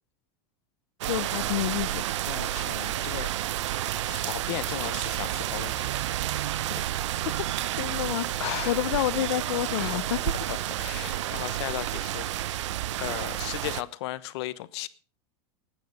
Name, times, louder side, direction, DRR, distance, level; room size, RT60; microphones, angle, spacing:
voice 1, 1.0-2.0 6.7-7.0 7.2-7.5 7.7-10.2, left 14 dB, 90° left, 0.7 m, -29 dB
sound 1, 1.0-13.8, right 13 dB, 90° right, 0.9 m, -30 dB
voice 2, 2.3-3.3 4.0-6.0 8.4-8.9 9.7-12.7 13.0-14.9, left 17 dB, 65° left, 1.1 m, -36 dB
19.0 x 9.3 x 5.3 m
supercardioid pair, 150°, 15 cm